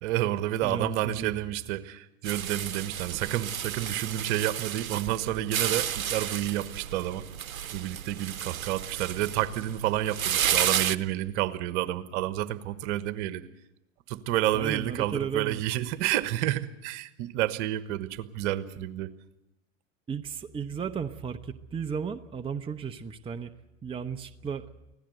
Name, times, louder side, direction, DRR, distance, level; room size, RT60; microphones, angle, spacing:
voice 1, 0.0-7.2 7.7-13.5 14.1-19.1, right 13 dB, 55° right, 13 dB, 1.3 m, -30 dB
voice 2, 0.6-1.3 14.5-15.6 20.1-23.5 23.8-24.7, right 6 dB, 15° right, 7 dB, 0.8 m, -34 dB
sound 1, 2.2-11.0, right 9 dB, 90° right, 0.8 m, -32 dB
24.5 x 16.5 x 7.9 m, 0.97 s
hypercardioid pair, 100°, 41 cm